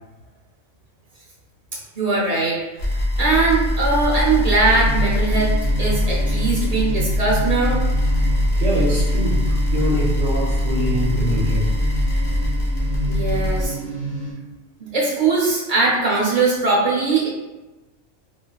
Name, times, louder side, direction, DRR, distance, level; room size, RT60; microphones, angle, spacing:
voice 1, 1.9-2.6 3.2-5.5 5.8-7.8 13.1-13.8 14.8-17.3, right 3 dB, 40° right, -5 dB, 0.7 m, -20 dB
sound 1, 2.8-13.7, left 1 dB, 65° left, 0.9 m, -21 dB
sound 2, 4.7-14.3, right 1 dB, 80° left, 1.3 m, -30 dB
voice 2, 8.5-11.8, equal, 75° right, -6 dB, 1.0 m, -24 dB
3.2 x 2.4 x 2.3 m, 1.1 s
omnidirectional pair, 1.3 m